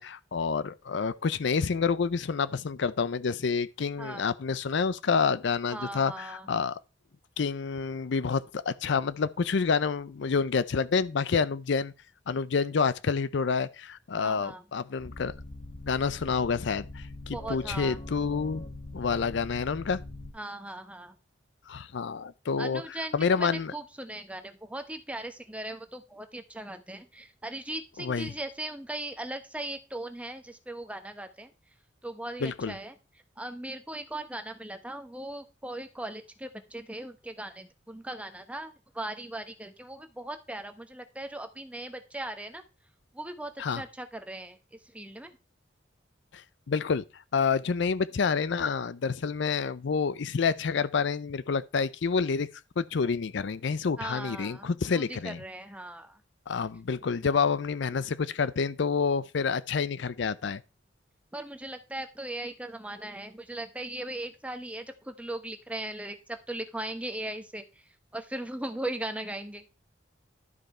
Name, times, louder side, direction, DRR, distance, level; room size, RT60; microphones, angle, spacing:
voice 1, 0.0-6.8 7.4-11.9 12.3-15.3 15.9-18.7 18.9-20.0 21.7-23.7 28.0-28.3 32.4-32.7 43.6-43.8 46.3-47.0 47.3-52.5 52.8-55.4 56.5-60.6, left 5 dB, 65° left, 0.5 m, -28 dB
voice 2, 5.7-6.5 14.2-14.6 17.3-18.0 20.3-21.1 22.6-31.5 32.0-32.9 33.4-42.6 43.1-44.6 44.9-45.3 54.0-56.2 61.3-67.8 68.1-69.6, right 1 dB, 5° right, 1.1 m, -38 dB
sound 1, 15.0-20.3, left 2 dB, 35° left, 2.5 m, -42 dB
12.0 x 5.4 x 4.3 m
head